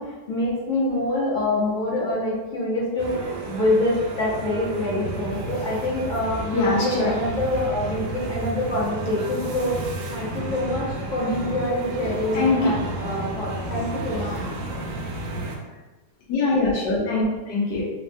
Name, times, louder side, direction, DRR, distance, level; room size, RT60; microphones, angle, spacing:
voice 1, 0.0-14.3, left 1 dB, 40° left, -7 dB, 0.7 m, -26 dB
sound 1, 3.0-15.6, right 2 dB, 85° right, 1.3 m, -32 dB
voice 2, 6.5-7.1 12.3-12.6 14.9-15.0 16.3-17.8, left 3 dB, 75° left, -5 dB, 1.3 m, -22 dB
3.4 x 2.1 x 2.6 m, 1.2 s
omnidirectional pair, 2.0 m